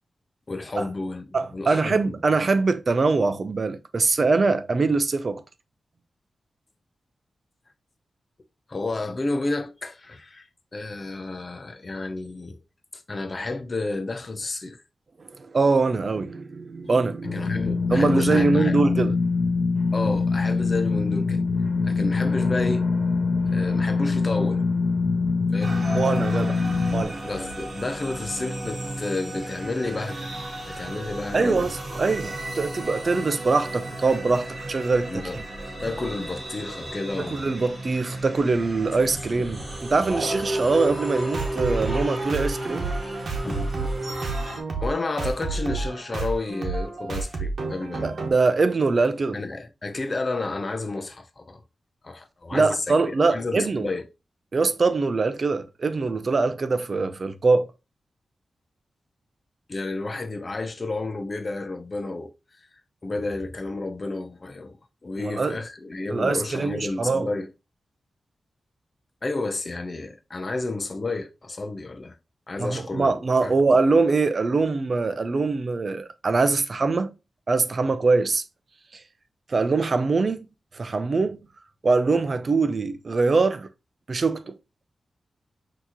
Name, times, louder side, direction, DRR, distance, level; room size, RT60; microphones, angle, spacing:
voice 1, 0.5-1.2 1.5-2.1 8.7-10.5 10.7-12.6 13.1-14.8 17.3-18.8 19.9-21.4 21.8-22.8 23.5-24.7 25.5-25.8 27.2-30.3 30.7-31.7 35.1-35.4 35.8-37.5 43.4-43.7 44.8-48.2 49.3-51.6 52.0-54.0 59.7-62.3 63.0-64.8 65.0-67.5 69.2-72.2 72.5-73.1 73.4-73.6, left 2 dB, 35° left, 0.6 m, -31 dB
voice 2, 1.3-5.4 15.2-17.4 17.9-19.2 25.9-26.6 26.9-27.2 31.3-35.2 37.2-42.9 48.0-49.4 52.5-53.9 54.5-57.7 65.2-65.6 66.1-67.3 72.6-77.1 77.5-78.4 79.5-80.5 80.7-81.4 81.8-83.7 84.1-84.5, right 3 dB, 45° right, 0.4 m, -23 dB
sound 1, 17.2-27.0, left 4 dB, 65° left, 1.2 m, -23 dB
sound 2, 25.6-44.6, right 1 dB, 25° right, 1.5 m, -33 dB
sound 3, 41.3-48.3, right 3 dB, 60° right, 1.0 m, -30 dB
5.9 x 2.8 x 2.9 m
wide cardioid pair, 135°, 0 cm